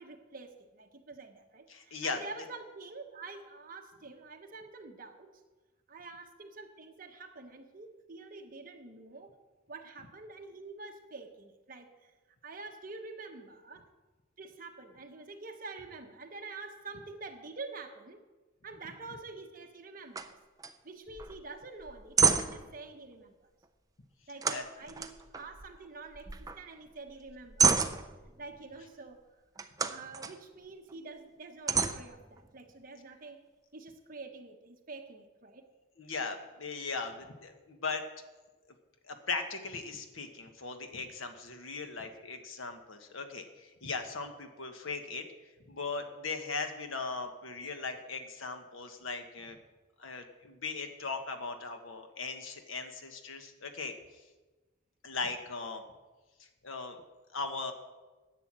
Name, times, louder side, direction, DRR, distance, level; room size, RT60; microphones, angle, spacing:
voice 1, 0.0-5.3 5.9-9.3 9.7-12.1 12.4-13.9 14.4-18.2 18.6-20.4 20.8-23.3 24.3-27.8 28.4-29.2 29.6-33.4 33.7-35.7, right 3 dB, 45° right, 4 dB, 1.2 m, -47 dB
voice 2, 1.7-2.4 24.5-24.6 36.0-38.0 39.1-45.2 45.7-49.6 50.0-53.9 55.0-55.8 56.6-57.0 57.3-57.7, left 4 dB, 85° left, 6 dB, 1.3 m, -38 dB
sound 1, 20.2-20.3 20.6-20.7 21.1-21.4 21.8-22.7 24.4-25.9 26.1-26.7 27.1-28.4 29.6-30.4 30.9-31.0 31.7-32.7, right 5 dB, 20° right, 0.5 m, -30 dB
10.5 x 7.9 x 7.5 m, 1.2 s
head